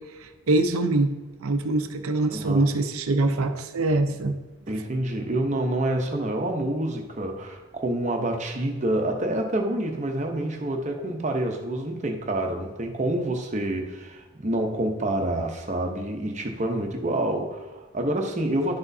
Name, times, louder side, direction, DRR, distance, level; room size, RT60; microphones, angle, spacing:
voice 1, 0.5-1.1 1.4-4.4, right 2 dB, 85° right, 8 dB, 0.6 m, -23 dB
voice 2, 2.3-2.7 4.7-18.8, right 1 dB, 35° right, 3 dB, 0.8 m, -27 dB
11.0 x 6.0 x 2.7 m, 1.2 s
head